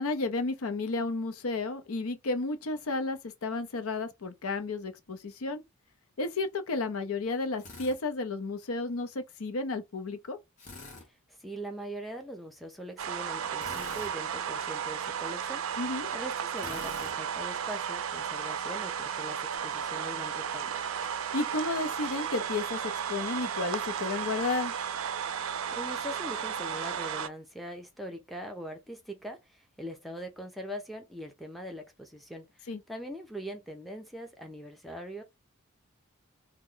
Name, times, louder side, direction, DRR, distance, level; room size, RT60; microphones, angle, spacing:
voice 1, 0.0-5.6 6.2-10.4 15.8-16.1 21.3-22.8 23.1-24.7 32.7-32.8, left 3 dB, 80° left, 0.6 m, -32 dB
Drill, 7.6-8.0 10.6-11.1 13.6-14.1 16.6-17.1, left 2 dB, 35° left, 1.1 m, -45 dB
voice 2, 11.4-15.6 16.1-20.7 25.7-35.2, equal, ahead, 0.5 m, -42 dB
sound 1, 13.0-27.3, right 8 dB, 70° right, 0.4 m, -34 dB
3.0 x 2.1 x 3.7 m
head